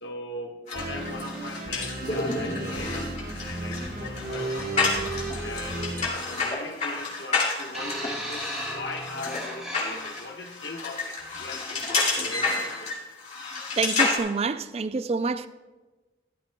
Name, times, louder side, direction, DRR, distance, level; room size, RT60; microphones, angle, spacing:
voice 1, 0.0-5.0 5.4-12.9, left 2 dB, 85° left, 1.2 m, -39 dB
sound 1, 0.7-14.2, left 3 dB, 40° left, 2.4 m, -30 dB
sound 2, 0.7-6.1, right 2 dB, 50° right, 1.2 m, -34 dB
sound 3, 7.7-10.3 11.2-11.4, equal, ahead, 2.7 m, -35 dB
voice 2, 13.8-15.5, right 4 dB, 35° right, 0.4 m, -27 dB
14.0 x 12.0 x 2.2 m
head